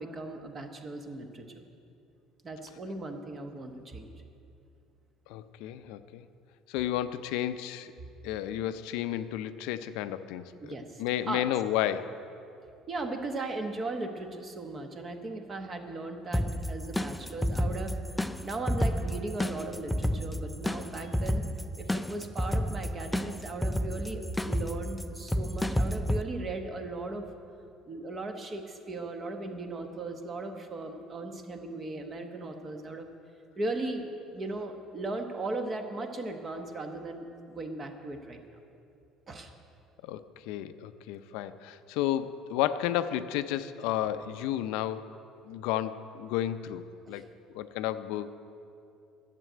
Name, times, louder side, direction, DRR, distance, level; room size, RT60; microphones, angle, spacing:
voice 1, 0.0-1.7 2.4-4.1 10.6-11.5 12.9-18.0 18.4-21.5 21.8-27.3 27.9-33.1 33.6-38.4 39.3-39.5 47.1-47.2, right 2 dB, 25° right, 6 dB, 1.0 m, -37 dB
voice 2, 5.3-6.3 6.7-7.9 8.2-12.2 40.0-45.1 45.5-47.2 47.5-48.3, left 12 dB, 85° left, 11 dB, 0.5 m, -32 dB
sound 1, 16.3-26.2, equal, 5° left, 0.3 m, -31 dB
11.0 x 7.5 x 9.1 m, 2.6 s
cardioid pair, 155°, 0 cm